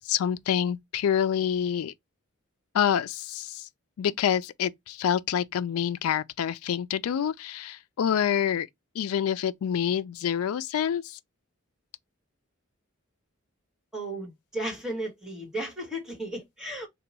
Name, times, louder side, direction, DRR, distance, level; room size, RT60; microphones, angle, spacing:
voice 1, 0.1-1.9 2.7-3.7 4.0-8.7 9.0-11.2, left 9 dB, 80° left, 0.3 m, -27 dB
voice 2, 13.9-16.9, right 1 dB, 5° right, 1.3 m, -34 dB
2.8 x 2.2 x 4.0 m
head